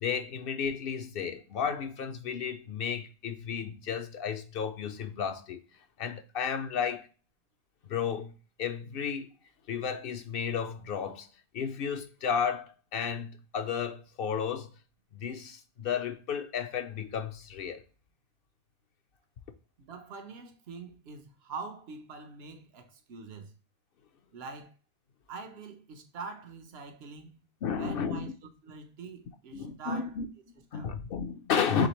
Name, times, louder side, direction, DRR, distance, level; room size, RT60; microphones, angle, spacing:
voice 1, 0.0-5.6 6.0-7.1 7.9-9.3 9.7-11.3 11.5-14.7 15.1-17.8 27.6-28.3 29.5-31.9, left 7 dB, 70° left, 0.7 m, -33 dB
voice 2, 19.8-23.5 24.3-24.7 25.3-27.4 27.8-28.3 28.6-30.1 30.7-30.9 31.7-31.9, right 4 dB, 80° right, 1.0 m, -44 dB
5.0 x 3.4 x 2.9 m
omnidirectional pair, 1.0 m